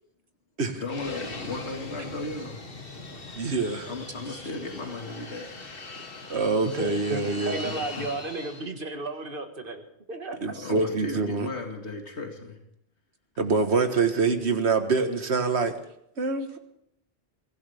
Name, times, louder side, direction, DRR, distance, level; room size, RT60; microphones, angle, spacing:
voice 1, 0.8-2.6 3.3-3.4 3.8-5.6 7.6-8.2 10.4-12.6, left 3 dB, 85° left, 2 dB, 2.3 m, -36 dB
Fixed-wing aircraft airplane, 0.9-8.7, left 3 dB, 60° left, 2.0 m, -41 dB
voice 2, 3.4-3.9 6.3-7.6 10.4-11.5 13.4-15.7 16.2-16.6, right 4 dB, 80° right, 7 dB, 1.8 m, -25 dB
voice 3, 6.8-9.8 10.1-10.4, right 2 dB, 55° right, 5 dB, 1.9 m, -33 dB
23.0 x 16.0 x 3.5 m, 0.78 s
omnidirectional pair, 1.1 m